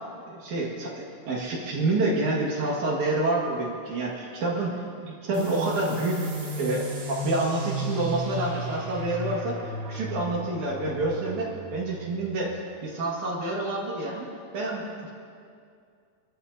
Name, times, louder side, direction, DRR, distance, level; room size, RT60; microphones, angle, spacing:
voice 1, 0.3-6.3 6.6-12.5 12.8-14.3 14.5-15.1, right 2 dB, 75° right, -4 dB, 3.1 m, -28 dB
sound 1, 5.3-12.6, equal, 50° right, 3.2 m, -34 dB
25.5 x 13.5 x 2.7 m, 2.3 s
omnidirectional pair, 3.5 m